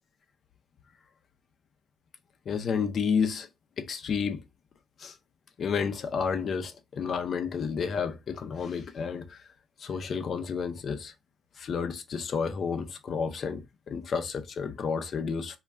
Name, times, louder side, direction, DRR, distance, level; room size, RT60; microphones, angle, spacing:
voice 1, 2.5-3.5 3.8-4.4 5.0-5.1 5.6-9.4 9.8-11.1 11.6-15.6, left 6 dB, 55° left, 0.5 m, -31 dB
2.2 x 2.2 x 3.4 m
cardioid pair, 90°, 0 cm